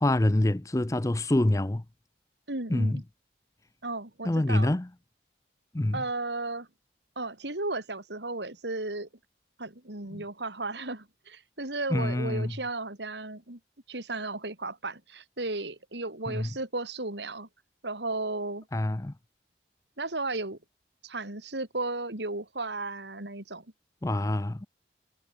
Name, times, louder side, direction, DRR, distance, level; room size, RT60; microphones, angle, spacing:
voice 1, 0.0-1.8 2.7-3.0 4.2-4.9 5.7-6.0 10.1-10.2 11.9-12.5 16.3-16.5 18.7-19.1 24.0-24.7, left 1 dB, 20° left, 0.5 m, -26 dB
voice 2, 2.5-3.0 3.8-4.8 5.9-6.7 7.1-9.1 9.6-13.6 13.9-17.5 17.8-18.7 20.0-20.6 21.0-23.6, right 2 dB, 80° right, 3.4 m, -34 dB
head